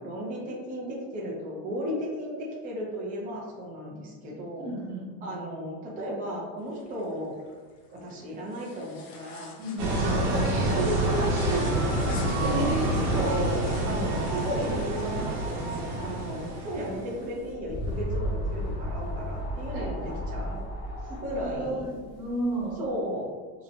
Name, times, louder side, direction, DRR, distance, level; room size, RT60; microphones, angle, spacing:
voice 1, 0.0-4.7 5.2-7.4 7.9-9.5 10.0-20.6 21.2-21.9 22.8-23.3, equal, 20° right, -4 dB, 0.5 m, -34 dB
voice 2, 4.6-5.4 9.6-10.0 12.4-13.4 19.7-20.0 21.3-22.8, right 2 dB, 85° right, -3 dB, 1.1 m, -33 dB
sound 1, 6.6-16.1, left 3 dB, 70° left, 0.8 m, -49 dB
sound 2, 9.8-17.3, right 1 dB, 60° right, 1.0 m, -27 dB
sound 3, 17.2-22.8, equal, 35° left, 0.5 m, -34 dB
2.9 x 2.1 x 2.5 m, 1.5 s
supercardioid pair, 120°, 49 cm